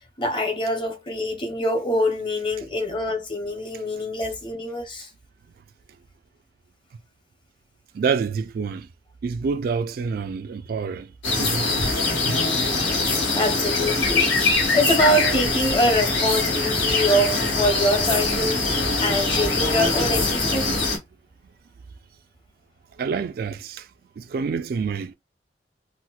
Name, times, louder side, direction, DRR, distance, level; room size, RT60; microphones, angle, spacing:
voice 1, 0.2-5.1 13.0-14.3 14.7-20.7, equal, 30° left, 0.8 m, -24 dB
voice 2, 7.9-8.9 9.2-11.1 11.4-12.4 23.0-23.9 24.2-25.1, right 5 dB, 55° right, 0.3 m, -27 dB
sound 1, 11.2-21.0, left 3 dB, 85° left, 1.4 m, -23 dB
4.2 x 2.1 x 2.3 m
head